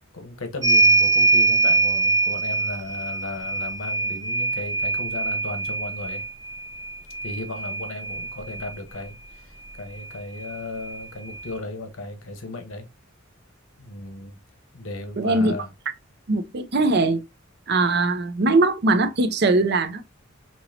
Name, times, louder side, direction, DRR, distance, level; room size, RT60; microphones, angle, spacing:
voice 1, 0.1-6.2 7.2-12.9 13.8-14.3 14.7-15.7, left 2 dB, 85° left, 1.1 m, -35 dB
sound 1, 0.6-8.7 10.0-10.1 10.4-11.5, right 3 dB, 20° right, 0.8 m, -23 dB
voice 2, 15.2-15.5 16.3-17.2 17.7-20.0, right 2 dB, 55° right, 0.5 m, -21 dB
5.4 x 2.9 x 2.7 m
head